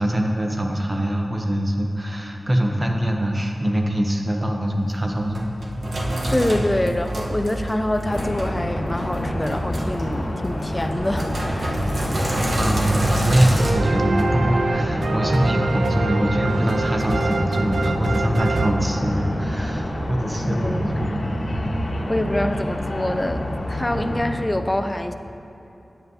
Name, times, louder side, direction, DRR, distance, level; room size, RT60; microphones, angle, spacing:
voice 1, 0.0-5.5 12.6-21.8 24.0-24.2, equal, 25° right, 2 dB, 0.8 m, -23 dB
Sink (filling or washing), 4.9-13.7, right 1 dB, 65° right, 1.0 m, -27 dB
voice 2, 6.3-12.0 20.4-21.0 22.1-25.1, left 1 dB, 20° left, 7 dB, 0.3 m, -26 dB
sound 1, 8.0-24.3, equal, 65° left, 1.1 m, -28 dB
sound 2, 13.6-19.5, right 3 dB, 85° right, 0.3 m, -26 dB
9.4 x 7.9 x 2.7 m, 3.0 s
wide cardioid pair, 95°, 0 cm